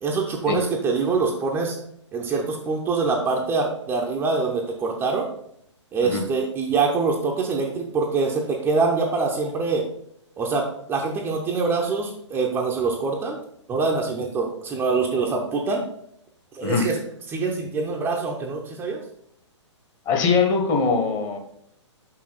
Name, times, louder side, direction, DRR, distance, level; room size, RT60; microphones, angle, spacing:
voice 1, 0.0-1.8 2.1-5.3 5.9-9.8 10.4-13.4 13.7-15.8 16.5-17.0 17.3-19.0, right 4 dB, 15° right, 0 dB, 0.7 m, -24 dB
voice 2, 20.1-21.4, left 5 dB, 25° left, 3 dB, 1.1 m, -21 dB
5.9 x 5.8 x 3.9 m, 0.70 s
figure-of-eight pair, 120°, 16 cm